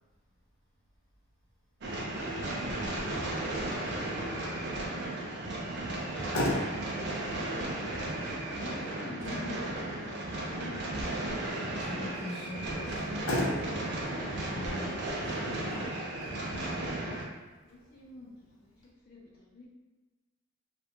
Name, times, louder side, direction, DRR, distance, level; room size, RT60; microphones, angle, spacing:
sound 1, 1.8-17.2, right 1 dB, 55° right, 0.5 m, -35 dB
Motor vehicle (road), 5.9-18.9, left 1 dB, 85° left, 0.7 m, -39 dB
voice 1, 8.0-10.8 17.6-19.7, left 3 dB, 50° left, -7 dB, 0.4 m, -48 dB
voice 2, 11.6-16.0, equal, 20° left, -14 dB, 0.9 m, -42 dB
2.4 x 2.1 x 2.9 m, 1.2 s
head